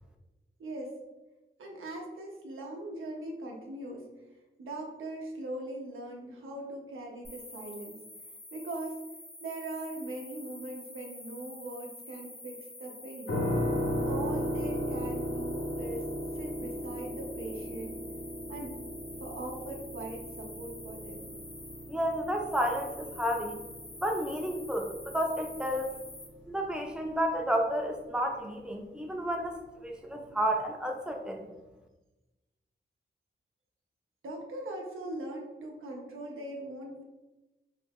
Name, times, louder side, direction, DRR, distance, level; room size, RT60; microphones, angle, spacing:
voice 1, 0.6-1.0 1.6-4.1 4.6-8.0 8.5-9.0 9.4-13.4 13.8-18.0 18.5-18.8 19.2-21.3 34.2-37.0, right 2 dB, 90° right, -1 dB, 0.5 m, -40 dB
sound 1, 7.2-26.2, left 2 dB, 45° left, 1.0 m, -48 dB
sound 2, 13.3-26.1, equal, 70° left, 0.8 m, -36 dB
voice 2, 21.9-23.6 24.0-25.9 26.5-29.6 29.8-31.5, equal, 5° right, 1 dB, 0.5 m, -31 dB
3.1 x 2.2 x 3.3 m, 1.1 s
wide cardioid pair, 75°, 20 cm